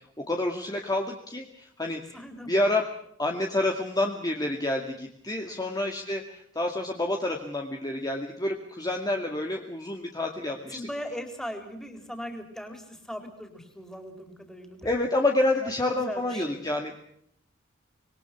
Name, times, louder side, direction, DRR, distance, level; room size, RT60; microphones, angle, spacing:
voice 1, 0.0-2.2 2.5-2.9 3.2-10.8 14.8-17.0, left 1 dB, 20° left, 2 dB, 2.2 m, -28 dB
voice 2, 2.1-2.5 5.5-5.8 10.7-15.1 15.6-16.6, equal, 5° left, 5 dB, 4.3 m, -39 dB
26.0 x 22.0 x 6.1 m, 0.69 s
head